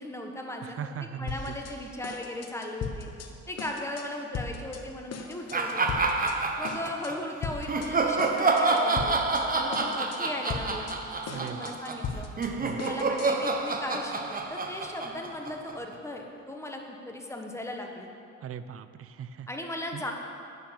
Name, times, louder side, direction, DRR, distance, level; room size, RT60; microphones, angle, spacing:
voice 1, 0.0-0.8 1.2-3.1 3.5-6.0 6.6-11.0 11.2-12.3 12.7-18.1 19.5-20.1, left 1 dB, 10° left, 2 dB, 1.3 m, -37 dB
voice 2, 0.6-1.5 11.3-11.7 12.6-12.9 18.4-19.5 19.9-20.0, right 8 dB, 50° right, 12 dB, 0.6 m, -39 dB
sound 1, 1.3-1.8 2.0-3.3 3.6-4.1 4.3-4.8 5.1-6.4 6.6-7.1 7.4-7.9 8.2-9.4 9.7-10.2 10.5-13.5, left 5 dB, 55° left, 1.0 m, -38 dB
sound 2, 5.5-7.2 7.7-15.9, right 3 dB, 30° right, 0.9 m, -28 dB
9.2 x 6.7 x 7.1 m, 2.5 s
cardioid pair, 90°, 30 cm